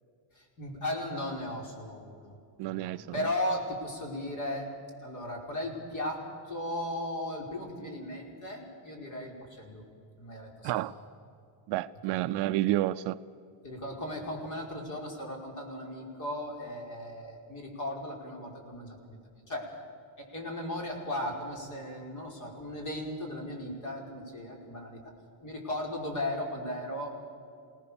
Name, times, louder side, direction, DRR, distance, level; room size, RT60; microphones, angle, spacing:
voice 1, 0.3-2.4 2.6-4.7 5.0-9.8 10.2-11.1 12.1-12.2 13.6-19.7 20.2-25.0 25.4-27.1, left 1 dB, 35° left, 5.3 m, -36 dB
voice 2, 2.6-3.1 10.6-10.9 11.7-13.2, right 15 dB, 55° right, 0.6 m, -29 dB
28.5 x 18.5 x 7.1 m
cardioid pair, 160°, 50 cm